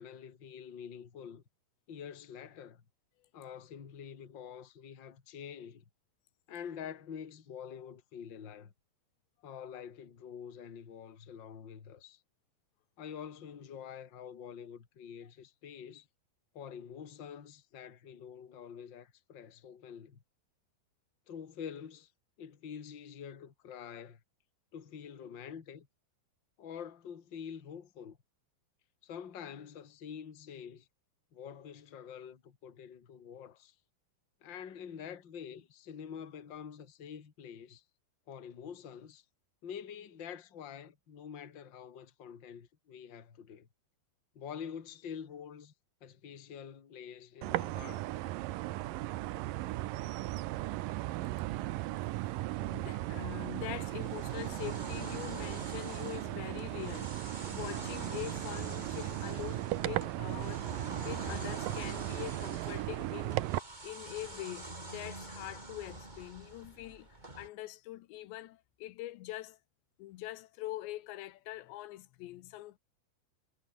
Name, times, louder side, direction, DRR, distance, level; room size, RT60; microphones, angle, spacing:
voice 1, 0.0-1.4 1.9-2.8 3.3-5.8 6.5-8.7 9.4-12.2 13.0-16.1 16.5-20.2 21.3-22.1 22.4-24.2 24.7-25.9 26.6-28.2 29.0-30.9 31.3-33.8 34.4-37.8 38.3-39.2 39.6-43.7 44.3-45.7 46.0-48.1, left 8 dB, 35° left, 2.2 m, -46 dB
sound 1, 47.4-63.6, right 17 dB, 80° right, 2.0 m, -37 dB
voice 2, 52.2-60.7 61.0-63.4 63.8-67.1 67.4-69.6 70.0-72.8, left 16 dB, 90° left, 3.3 m, -44 dB
sound 2, 54.1-67.5, right 2 dB, 10° right, 2.8 m, -46 dB
omnidirectional pair, 5.0 m